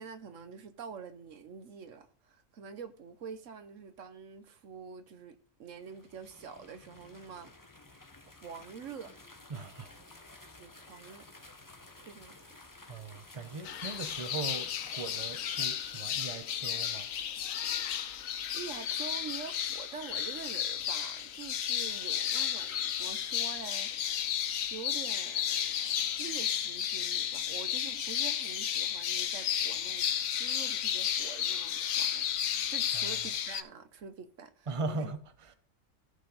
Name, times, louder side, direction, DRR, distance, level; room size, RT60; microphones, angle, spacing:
voice 1, 0.0-7.5 8.4-9.1 10.6-11.4 12.0-12.5 18.5-23.9 24.7-25.8 26.2-30.1 30.4-32.3 32.7-35.1, right 6 dB, 75° right, 1.2 m, -46 dB
sound 1, 5.7-16.5, left 2 dB, 15° left, 0.9 m, -54 dB
voice 2, 9.5-10.3 12.9-17.1 32.9-33.3 34.6-35.5, right 3 dB, 25° right, 0.9 m, -40 dB
sound 2, 13.7-33.6, left 9 dB, 85° left, 1.2 m, -33 dB
15.5 x 5.3 x 3.9 m
omnidirectional pair, 1.4 m